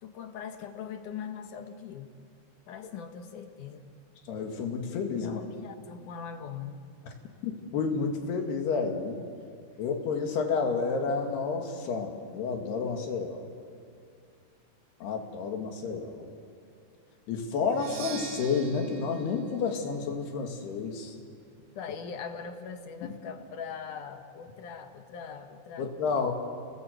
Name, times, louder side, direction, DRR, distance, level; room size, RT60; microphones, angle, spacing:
voice 1, 0.0-2.1 2.7-3.9 5.2-6.9 21.7-26.2, left 7 dB, 65° left, 6 dB, 2.4 m, -41 dB
voice 2, 4.3-5.4 7.4-9.2 9.8-13.4 15.0-16.3 17.3-21.2 23.0-23.1 25.8-26.3, left 5 dB, 85° left, 3 dB, 4.2 m, -30 dB
Percussion, 17.7-21.5, right 7 dB, 80° right, 3.4 m, -45 dB
30.0 x 18.5 x 8.1 m, 2.3 s
omnidirectional pair, 4.5 m